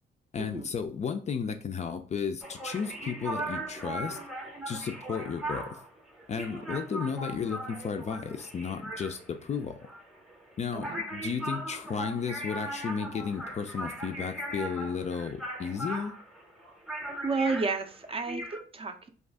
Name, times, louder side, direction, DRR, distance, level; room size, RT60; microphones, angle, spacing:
voice 1, 0.3-4.2 4.7-5.8 6.3-9.9 10.6-16.1, left 6 dB, 35° left, 7 dB, 0.4 m, -34 dB
sound 1, 2.4-18.6, right 1 dB, ahead, 0.7 m, -39 dB
voice 2, 17.2-19.1, right 4 dB, 30° right, 7 dB, 0.4 m, -31 dB
2.5 x 2.3 x 3.4 m, 0.40 s
cardioid pair, 90°, 20 cm